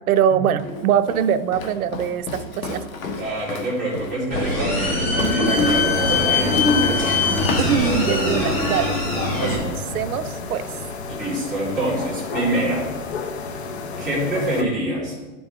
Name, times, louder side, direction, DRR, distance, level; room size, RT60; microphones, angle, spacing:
voice 1, 0.1-2.8 7.6-9.0 9.4-10.7, right 9 dB, 80° right, 11 dB, 0.6 m, -23 dB
Walk footsteps, 0.6-8.3, left 3 dB, 70° left, 1.2 m, -32 dB
voice 2, 3.2-7.8 11.1-12.9 14.0-15.1, right 1 dB, ahead, -11 dB, 2.3 m, -26 dB
sound 1, 4.3-9.6, left 2 dB, 25° left, 1.6 m, -21 dB
sound 2, 5.4-14.6, left 4 dB, 50° left, 0.7 m, -31 dB
11.0 x 5.3 x 3.5 m, 1.2 s
hypercardioid pair, 180°, 42 cm